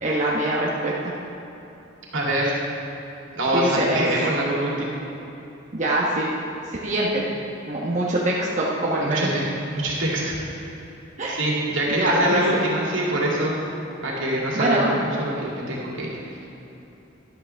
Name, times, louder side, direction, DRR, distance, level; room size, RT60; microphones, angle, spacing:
voice 1, 0.0-1.1 3.5-4.1 5.7-6.3 6.8-7.2 7.6-9.3 11.2-11.4 11.9-12.6 14.5-14.9, right 1 dB, 40° right, -5 dB, 1.1 m, -23 dB
voice 2, 2.1-2.6 3.3-5.0 9.0-10.8 11.3-13.5 14.0-16.4, right 1 dB, 75° right, -4 dB, 2.6 m, -25 dB
13.0 x 11.5 x 3.4 m, 3.0 s
head